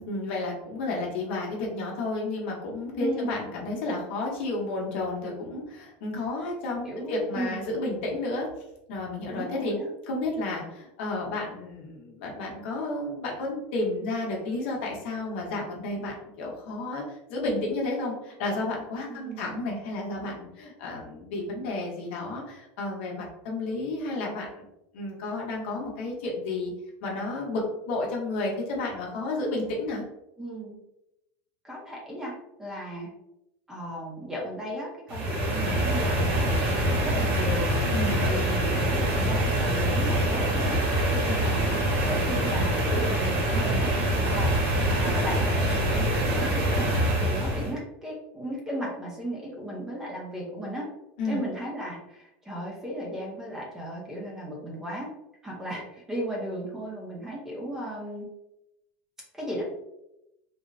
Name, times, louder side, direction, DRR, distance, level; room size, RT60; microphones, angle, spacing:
voice 1, 0.0-8.5 8.9-9.7 10.0-17.0 17.3-24.6 24.9-26.7 27.0-30.0 37.9-38.2 51.2-51.4, left 2 dB, 75° left, -1 dB, 0.9 m, -31 dB
voice 2, 3.0-3.4 6.8-7.6 9.3-9.9 19.1-19.6 30.4-30.8 31.6-32.3 32.6-33.1 33.7-37.7 38.2-40.8 41.1-43.9 44.3-44.6 44.9-46.9 47.2-50.9 51.2-55.1 55.4-58.3 59.3-59.6, equal, 10° right, -3 dB, 0.5 m, -35 dB
sound 1, 35.1-47.7, right 1 dB, 55° right, 0.9 m, -25 dB
3.6 x 2.0 x 2.5 m, 0.88 s
cardioid pair, 175°, 6 cm